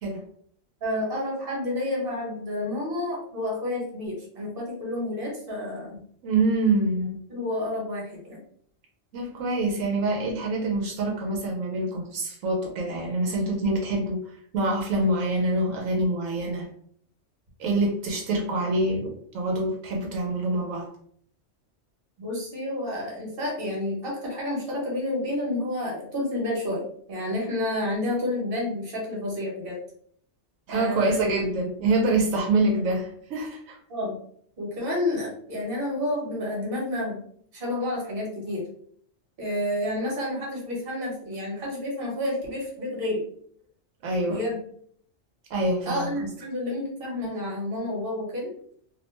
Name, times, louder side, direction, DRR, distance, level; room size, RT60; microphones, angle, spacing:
voice 1, 0.8-6.0 7.3-8.4 22.2-26.8 27.1-29.8 30.7-31.2 33.9-34.2 34.6-37.2 37.5-38.7 39.4-43.2 44.3-44.6 45.8-48.5, left 1 dB, 50° right, -3 dB, 1.2 m, -30 dB
voice 2, 6.2-7.2 9.1-14.2 14.5-16.7 17.6-20.9 30.7-33.8 44.0-44.4 45.5-46.2, right 2 dB, 85° right, 0 dB, 1.0 m, -25 dB
2.7 x 2.1 x 3.0 m, 0.62 s
omnidirectional pair, 1.3 m